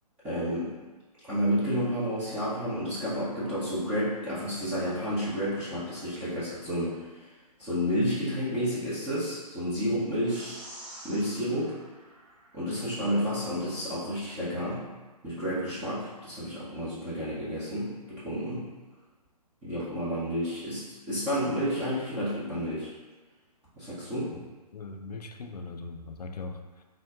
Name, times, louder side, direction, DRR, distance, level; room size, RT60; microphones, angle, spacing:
voice 1, 0.2-0.7 1.2-7.3 7.6-10.6 11.0-11.7 12.5-14.8 15.2-18.7 19.6-22.9 23.8-24.3, equal, 5° right, -13 dB, 0.3 m, -30 dB
sound 1, 10.3-12.9, right 1 dB, 50° right, 1.4 m, -47 dB
voice 2, 24.7-26.8, left 3 dB, 75° left, 5 dB, 0.4 m, -40 dB
3.6 x 2.2 x 3.5 m, 1.3 s
figure-of-eight pair, 130°, 21 cm